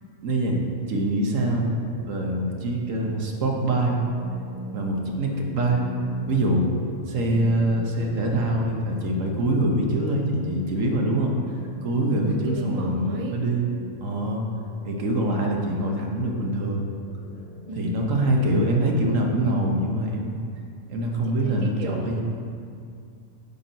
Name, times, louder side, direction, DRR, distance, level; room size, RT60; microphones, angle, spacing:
voice 1, 0.2-0.6 0.9-1.7 2.1-4.0 4.7-5.8 6.3-6.7 7.1-11.3 11.8-13.7 14.0-14.5 14.8-16.9 17.7-20.4 20.9-22.2, right 1 dB, 65° right, 0 dB, 1.3 m, -24 dB
sound 1, 1.8-19.4, equal, 45° left, 1.2 m, -41 dB
voice 2, 7.2-7.9 12.1-13.4 14.9-15.2 17.7-18.1 21.2-22.2, right 2 dB, 40° right, 1 dB, 0.5 m, -35 dB
9.2 x 6.0 x 4.0 m, 2.4 s
omnidirectional pair, 1.5 m